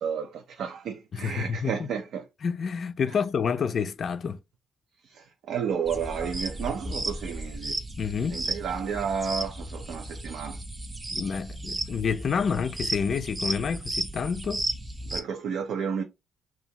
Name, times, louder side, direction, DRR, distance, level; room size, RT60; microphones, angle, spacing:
voice 1, 0.0-2.2 3.1-3.2 5.0-7.8 8.3-10.6 15.1-16.0, right 7 dB, 75° right, 0.5 m, -32 dB
voice 2, 1.1-1.7 2.4-4.4 8.0-8.4 11.1-14.6, left 6 dB, 50° left, 0.3 m, -28 dB
sound 1, 5.9-15.2, right 1 dB, 20° right, 0.6 m, -34 dB
2.7 x 2.4 x 2.8 m
cardioid pair, 90°, 0 cm